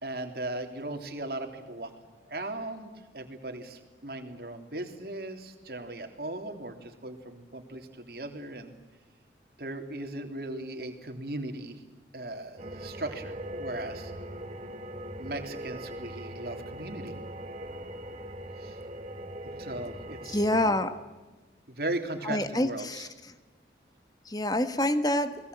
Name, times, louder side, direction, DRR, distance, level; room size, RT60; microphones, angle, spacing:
voice 1, 0.0-1.9 2.3-8.7 9.6-11.8 12.1-14.1 15.2-17.1 18.6-18.8 19.6-20.8 21.7-23.1, right 2 dB, 55° right, 5 dB, 3.1 m, -38 dB
sound 1, 12.6-20.7, right 1 dB, 35° right, 1.8 m, -40 dB
voice 2, 20.3-20.9 22.2-23.1 24.3-25.4, left 1 dB, 20° left, 10 dB, 1.4 m, -26 dB
29.5 x 20.5 x 8.2 m, 1.2 s
head